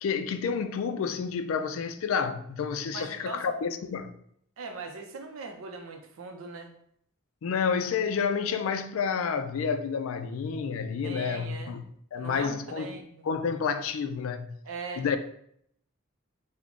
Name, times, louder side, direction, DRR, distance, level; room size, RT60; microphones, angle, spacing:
voice 1, 0.0-4.1 7.4-14.5 15.0-15.2, left 6 dB, 65° left, 0.3 m, -30 dB
voice 2, 2.9-3.4 4.6-6.7 11.0-11.8 12.2-13.3 14.6-15.1, right 3 dB, 70° right, 0.5 m, -40 dB
3.6 x 2.1 x 3.6 m
head